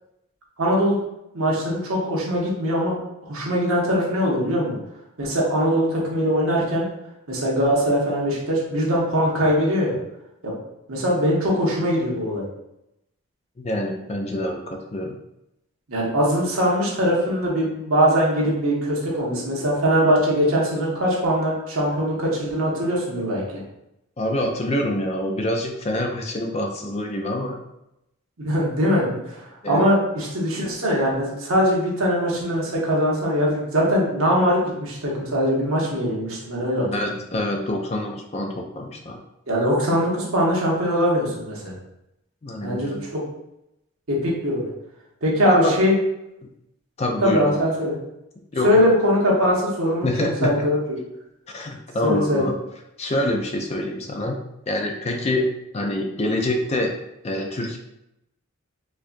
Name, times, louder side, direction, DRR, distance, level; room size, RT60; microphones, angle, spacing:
voice 1, 0.6-0.9 1.3-2.9 3.2-4.8 5.2-6.8 7.3-10.0 10.4-10.5 10.9-12.4 15.9-23.4 28.4-36.9 39.5-41.7 42.6-43.2 44.1-44.7 45.2-45.9 47.2-47.9 48.6-51.0 52.0-52.5, equal, 75° right, -4 dB, 1.0 m, -21 dB
voice 2, 13.6-15.2 24.2-27.6 29.6-29.9 36.9-39.2 42.4-43.1 45.4-45.8 47.0-47.6 48.5-48.7 50.0-50.6 51.5-52.6 53.0-54.4 54.7-55.5 55.7-56.9 57.2-57.8, left 1 dB, 30° left, 2 dB, 0.4 m, -26 dB
4.4 x 2.4 x 2.5 m, 0.87 s
head